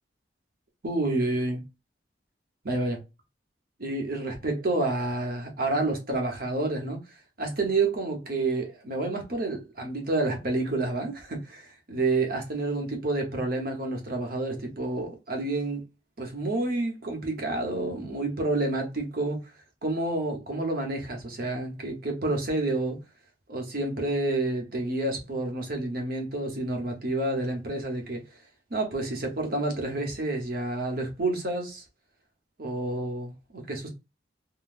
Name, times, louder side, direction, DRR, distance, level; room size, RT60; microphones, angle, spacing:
voice 1, 0.8-1.6 2.6-3.0 3.8-7.0 7.4-15.8 16.2-19.4 19.8-23.0 23.5-28.2 28.7-31.8 32.6-33.9, right 2 dB, 55° right, 1.0 m, -29 dB
3.8 x 2.2 x 2.5 m
head